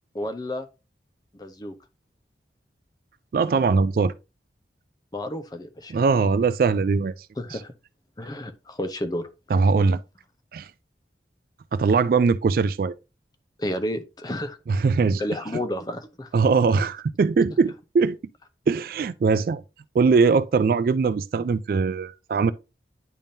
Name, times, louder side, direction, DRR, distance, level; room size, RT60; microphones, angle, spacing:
voice 1, 0.1-0.7 1.3-1.7 5.1-5.9 7.4-7.7 8.2-9.3 13.6-14.6 15.2-16.3, left 1 dB, 20° left, 0.6 m, -31 dB
voice 2, 3.3-4.1 5.9-7.1 9.5-10.0 10.5-10.7 11.7-12.9 14.7-15.2 16.3-18.2 18.7-19.6 19.9-22.5, right 4 dB, 55° right, 0.3 m, -21 dB
10.0 x 3.6 x 2.6 m
head